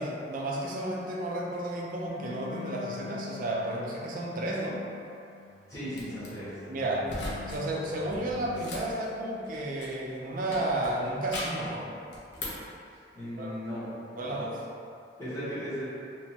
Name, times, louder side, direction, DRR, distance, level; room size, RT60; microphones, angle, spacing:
voice 1, 0.0-4.8 6.7-7.1 7.5-11.9 13.4-13.5 14.2-14.6, right 1 dB, 50° right, -2 dB, 0.4 m, -32 dB
sound 1, 2.1-8.6, left 5 dB, 15° right, 0.7 m, -45 dB
voice 2, 5.7-6.6 13.1-13.9 14.3-14.4 15.2-15.9, equal, 20° left, -14 dB, 0.7 m, -36 dB
sound 2, 5.9-6.3 7.0-7.6 7.9-10.1 10.5-11.7 12.1-12.7, left 1 dB, 65° left, 0.6 m, -39 dB
2.9 x 2.1 x 2.7 m, 2.5 s
head